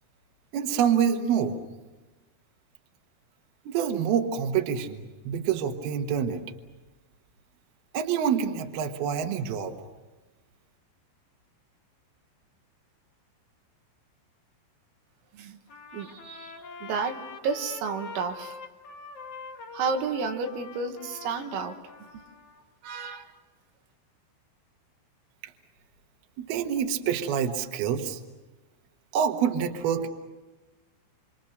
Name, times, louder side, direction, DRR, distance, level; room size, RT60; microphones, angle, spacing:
voice 1, 0.5-1.6 3.7-6.4 7.9-9.8 26.4-28.2 29.1-30.1, right 8 dB, 65° right, 5 dB, 2.8 m, -26 dB
Trumpet, 15.7-22.6, left 4 dB, 90° left, 1.3 m, -44 dB
voice 2, 15.9-18.6 19.7-21.8 22.8-23.3, right 5 dB, 85° right, 5 dB, 4.2 m, -31 dB
28.0 x 26.0 x 6.7 m, 1.2 s
omnidirectional pair, 5.9 m